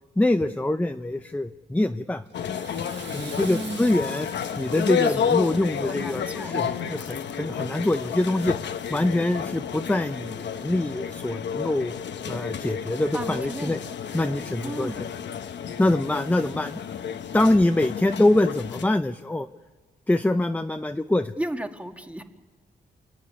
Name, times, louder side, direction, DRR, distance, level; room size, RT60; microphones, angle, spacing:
voice 1, 0.2-2.2 3.1-4.3 4.6-8.6 8.9-11.9 12.3-13.8 14.1-14.9 15.8-16.8 17.3-19.5 20.1-21.3, left 1 dB, 10° left, 8 dB, 0.7 m, -24 dB
sound 1, 2.3-18.8, left 7 dB, 80° left, 1.1 m, -31 dB
Water / Toilet flush, 2.3-7.5, right 7 dB, 85° right, 1.5 m, -47 dB
voice 2, 3.5-4.1 4.9-5.5 5.8-6.5 13.1-13.8 14.6-15.1 21.4-22.2, right 1 dB, 5° right, 5 dB, 1.9 m, -35 dB
29.0 x 12.5 x 9.7 m, 1.5 s
cardioid pair, 80°, 18 cm